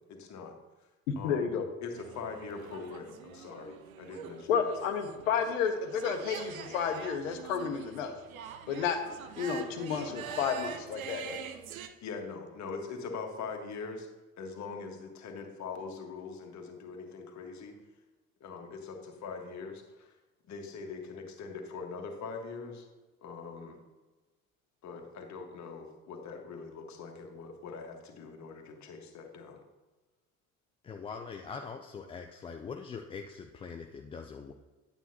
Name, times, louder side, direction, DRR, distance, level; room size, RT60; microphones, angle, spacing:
voice 1, 0.1-0.6 1.2-4.7 12.0-14.1 14.4-17.8 18.4-20.1 20.5-22.9 23.2-23.8 24.8-29.6, left 4 dB, 40° left, 3 dB, 1.5 m, -42 dB
voice 2, 1.1-1.7 4.5-8.1 8.7-9.0 9.4-11.4, left 6 dB, 70° left, 6 dB, 1.0 m, -31 dB
sound 1, 2.0-11.9, right 7 dB, 75° right, 0.7 m, -45 dB
voice 3, 30.8-34.5, left 5 dB, 15° left, 4 dB, 0.3 m, -42 dB
9.1 x 8.3 x 2.8 m, 1.2 s
figure-of-eight pair, 60°, 41 cm